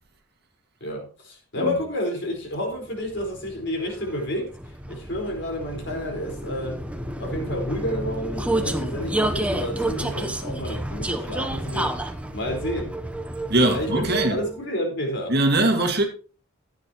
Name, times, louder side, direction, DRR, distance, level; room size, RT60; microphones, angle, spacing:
voice 1, 0.8-6.9 7.2-12.0 12.3-12.9 13.7-15.4, left 1 dB, 50° left, 4.4 m, -30 dB
Vehicle, 2.7-14.6, right 1 dB, 5° right, 0.7 m, -30 dB
voice 2, 13.5-14.4 15.3-16.0, right 2 dB, 45° right, 2.0 m, -21 dB
14.5 x 9.2 x 3.0 m
head